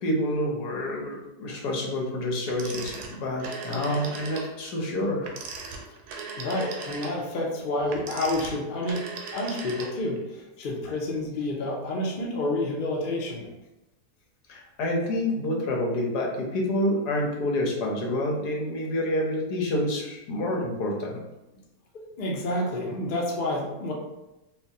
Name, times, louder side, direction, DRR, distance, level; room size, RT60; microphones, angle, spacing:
voice 1, 0.0-5.3 14.5-21.2, left 1 dB, 80° left, -1 dB, 1.3 m, -28 dB
Telephone, 2.5-4.5 5.2-10.2, right 4 dB, 70° right, 1.0 m, -38 dB
voice 2, 6.4-9.0 9.3-13.5 21.9-23.9, left 1 dB, 55° left, -1 dB, 0.6 m, -29 dB
4.5 x 2.2 x 2.7 m, 0.96 s
omnidirectional pair, 1.8 m